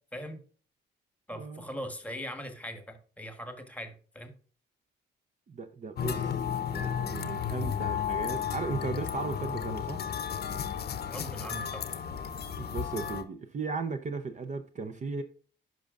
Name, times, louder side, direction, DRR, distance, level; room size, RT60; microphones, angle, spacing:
voice 1, 1.3-4.3 11.1-11.9, equal, 5° left, 1.3 m, -40 dB
voice 2, 5.5-6.4 6.7-10.0 12.6-15.2, right 4 dB, 35° right, 0.6 m, -36 dB
sound 1, 6.0-13.2, left 8 dB, 55° left, 0.7 m, -33 dB
11.0 x 5.3 x 2.4 m
cardioid pair, 90°, 20 cm